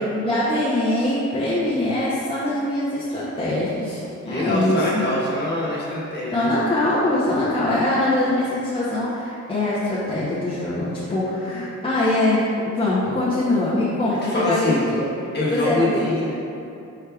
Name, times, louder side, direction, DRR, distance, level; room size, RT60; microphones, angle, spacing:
voice 1, 0.1-5.0 6.3-15.1 15.5-16.4, left 1 dB, 15° left, -9 dB, 0.6 m, -23 dB
voice 2, 4.2-6.5 14.2-14.8 15.3-16.3, left 1 dB, 35° left, -7 dB, 1.1 m, -24 dB
4.7 x 4.6 x 2.3 m, 2.7 s
cardioid pair, 125°, 30 cm